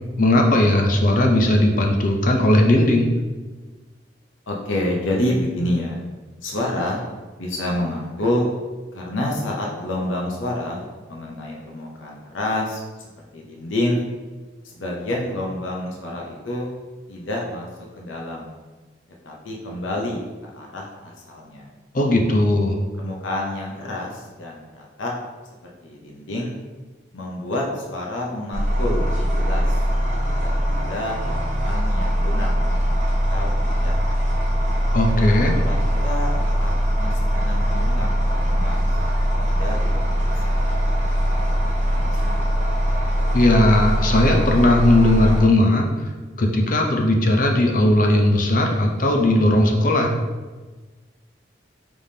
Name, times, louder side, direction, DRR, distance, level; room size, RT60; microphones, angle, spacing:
voice 1, 0.2-3.1 21.9-22.8 34.9-35.5 43.3-45.9 46.4-50.1, left 1 dB, 45° left, 2 dB, 0.5 m, -17 dB
voice 2, 4.5-6.0 6.4-7.0 7.4-8.5 8.9-14.0 14.6-16.7 17.1-17.7 17.9-18.6 19.2-20.2 20.5-21.7 23.0-25.1 25.8-26.5 27.1-29.9 30.4-32.5 33.3-34.5 35.6-38.1 38.4-38.7 39.0-40.6 41.2-42.3, left 1 dB, 80° left, -1 dB, 0.7 m, -28 dB
sound 1, 28.5-45.4, equal, 40° right, 0.9 m, -21 dB
5.0 x 3.5 x 2.7 m, 1.3 s
head